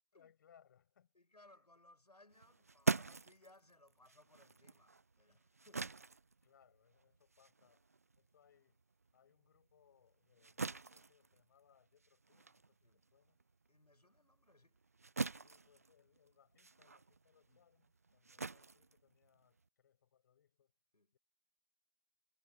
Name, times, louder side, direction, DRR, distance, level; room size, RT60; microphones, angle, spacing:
voice 1, 0.1-1.1 6.4-7.9 8.2-8.8 9.1-13.4 15.2-20.7 21.1-21.2, left 8 dB, 30° left, 7.0 m, -71 dB
voice 2, 1.1-5.9 12.8-13.1 13.7-14.8 17.5-17.6 20.9-21.1, left 2 dB, 70° left, 7.3 m, -66 dB
sound 1, 2.3-9.1 9.5-19.7, right 4 dB, 25° right, 0.5 m, -44 dB
figure-of-eight pair, 155°, 21 cm